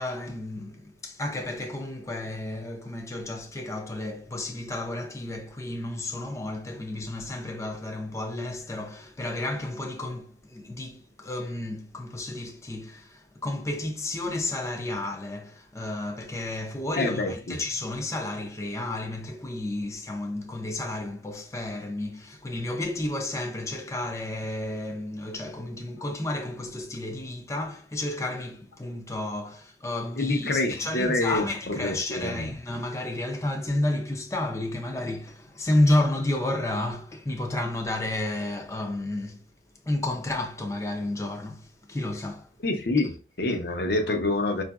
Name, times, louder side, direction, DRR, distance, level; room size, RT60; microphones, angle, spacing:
voice 1, 0.0-39.4 39.8-42.5, left 1 dB, 15° left, 0.5 m, -31 dB
voice 2, 17.0-17.6 30.2-32.5 42.6-44.6, left 2 dB, 60° left, 0.8 m, -27 dB
4.9 x 2.5 x 2.3 m
head